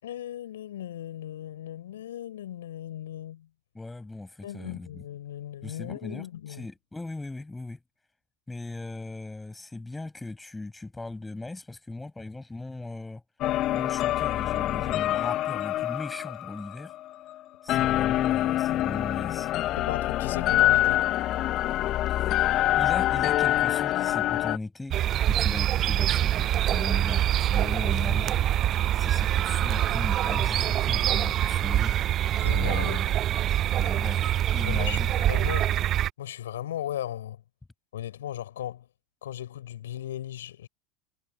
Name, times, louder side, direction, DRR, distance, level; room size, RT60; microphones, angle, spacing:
voice 1, 0.0-3.5 4.4-6.7 19.8-21.0 32.4-33.2 34.6-35.7 36.2-37.4 37.9-38.9 39.2-40.7, left 12 dB, 70° left, 5.3 m, -36 dB
voice 2, 3.7-5.0 5.6-7.8 8.5-13.2 13.7-16.9 17.6-19.5 22.1-25.0 25.3-28.5 28.9-32.0 32.5-33.0 33.8-35.5, left 2 dB, 10° left, 7.1 m, -38 dB
sound 1, 13.4-17.3 17.7-24.6, left 14 dB, 45° left, 1.2 m, -25 dB
sound 2, 24.9-36.1, right 12 dB, 40° right, 0.5 m, -25 dB
figure-of-eight pair, 80°, 0 cm